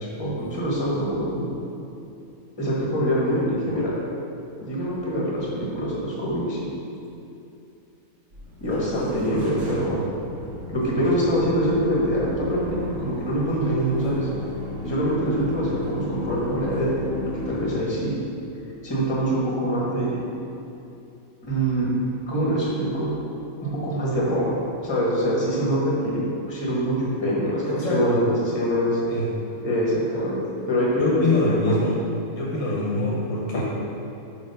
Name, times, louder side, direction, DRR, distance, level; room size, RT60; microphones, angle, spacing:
voice 1, 0.2-1.5 2.6-3.9 4.6-6.7 8.6-10.0 10.7-14.3 14.8-18.2 18.8-20.2 21.4-21.9 22.3-23.1 23.6-24.6 24.8-29.0 29.6-30.4 30.7-31.8 33.5-33.6, equal, 20° left, -5 dB, 1.1 m, -24 dB
sound 1, 8.3-17.7, left 2 dB, 55° right, 1.5 m, -35 dB
voice 2, 27.6-28.2 29.1-29.3 31.0-32.0 32.3-33.6, left 2 dB, 65° left, -5 dB, 1.1 m, -24 dB
4.7 x 4.2 x 5.4 m, 2.7 s
omnidirectional pair, 1.6 m